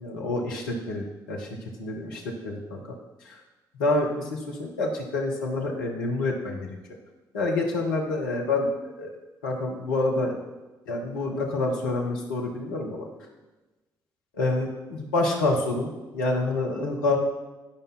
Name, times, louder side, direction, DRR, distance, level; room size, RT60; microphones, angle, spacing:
voice 1, 0.0-1.5 1.8-2.8 3.2-3.4 3.8-6.7 7.3-8.7 9.0-9.1 9.4-10.4 10.9-13.1 14.3-17.2, left 2 dB, 80° left, 1 dB, 1.3 m, -27 dB
11.5 x 5.2 x 4.3 m, 1.1 s
figure-of-eight pair, 45°, 11 cm